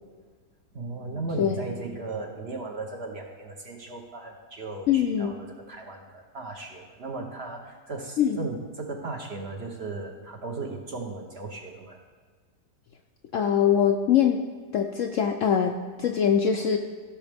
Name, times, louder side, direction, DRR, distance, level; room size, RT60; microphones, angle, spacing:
voice 1, 0.7-12.0, right 3 dB, 45° right, 2 dB, 0.9 m, -36 dB
voice 2, 4.9-5.3 8.2-8.4 13.3-14.4 14.7-16.8, left 8 dB, 70° left, 4 dB, 0.8 m, -23 dB
14.5 x 6.3 x 3.4 m, 1.5 s
omnidirectional pair, 1.8 m